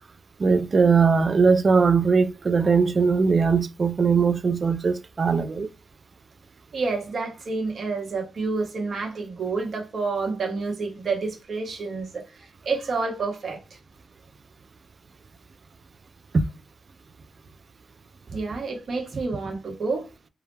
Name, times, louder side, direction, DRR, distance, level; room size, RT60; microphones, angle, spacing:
voice 1, 0.4-5.7 16.3-16.4, right 5 dB, 45° right, 0.3 m, -20 dB
voice 2, 6.7-13.6 18.3-20.1, right 4 dB, 60° right, 1.1 m, -29 dB
2.3 x 2.1 x 3.1 m
cardioid pair, 85°, 0 cm